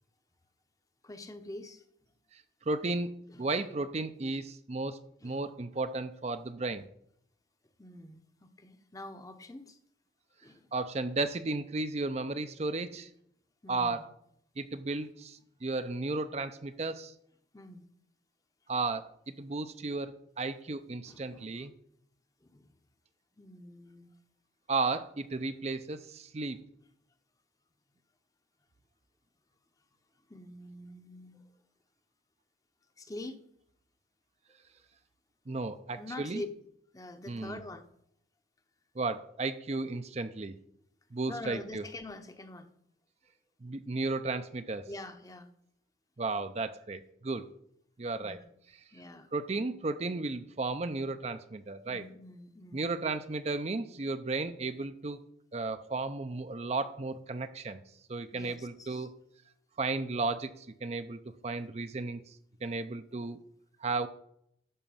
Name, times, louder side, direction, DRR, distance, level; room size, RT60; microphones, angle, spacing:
voice 1, 1.0-1.8 3.3-3.5 5.2-5.5 7.8-9.8 10.4-10.7 13.6-14.1 17.5-17.9 21.1-21.7 22.4-22.7 23.4-24.2 30.2-31.5 33.0-33.4 36.0-36.5 36.9-37.9 41.3-42.7 44.9-45.5 48.2-48.5 48.9-49.3 51.9-53.0 58.3-59.1, left 2 dB, 20° left, 8 dB, 0.8 m, -45 dB
voice 2, 2.3-5.0 5.2-6.9 10.7-13.1 13.7-14.1 14.6-17.1 18.7-21.7 24.7-26.6 35.5-36.4 37.3-37.6 39.0-40.6 41.1-41.8 43.6-44.8 46.2-47.5 48.0-48.4 49.3-52.0 52.7-55.2 55.5-57.8 58.1-59.1 59.8-63.4 63.8-64.1, right 3 dB, 35° right, 10 dB, 0.5 m, -34 dB
11.0 x 5.1 x 7.2 m, 0.72 s
head